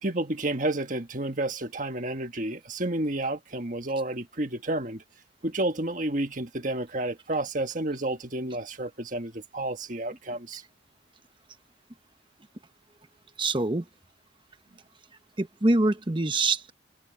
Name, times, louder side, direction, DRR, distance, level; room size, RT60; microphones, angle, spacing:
voice 1, 0.0-5.0 5.4-10.6, right 1 dB, 45° right, 1.5 m, -30 dB
voice 2, 13.4-13.8 15.4-16.7, right 2 dB, 25° right, 1.0 m, -24 dB
open air
head